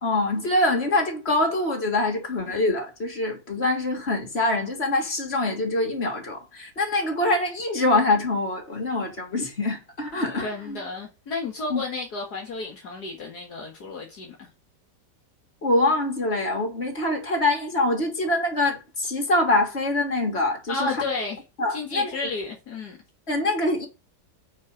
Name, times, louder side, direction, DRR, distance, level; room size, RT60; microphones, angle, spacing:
voice 1, 0.0-10.8 11.7-11.8 15.6-21.0 21.6-22.1 23.3-23.9, left 2 dB, 35° left, 2.9 m, -24 dB
voice 2, 10.4-14.5 20.7-21.4 21.7-23.0, left 3 dB, 65° left, 2.1 m, -32 dB
8.4 x 5.5 x 5.1 m
omnidirectional pair, 1.9 m